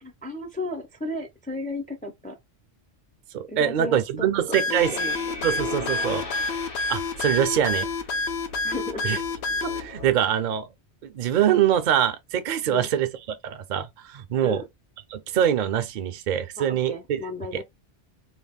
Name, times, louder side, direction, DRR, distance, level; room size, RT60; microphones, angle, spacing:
voice 1, 0.0-2.4 3.5-5.4 8.6-9.2 12.7-12.9 14.4-14.6 16.6-17.6, left 2 dB, 15° left, 0.3 m, -34 dB
voice 2, 3.3-4.9 5.4-6.2 6.9-7.9 9.0-9.2 9.6-10.7 11.0-14.6 15.1-16.9 17.5-17.6, right 10 dB, 60° right, 0.6 m, -24 dB
sound 1, 4.5-9.8, left 3 dB, 85° left, 0.9 m, -28 dB
sound 2, 4.8-10.1, left 2 dB, 60° left, 1.3 m, -39 dB
2.9 x 2.3 x 3.5 m
omnidirectional pair, 1.1 m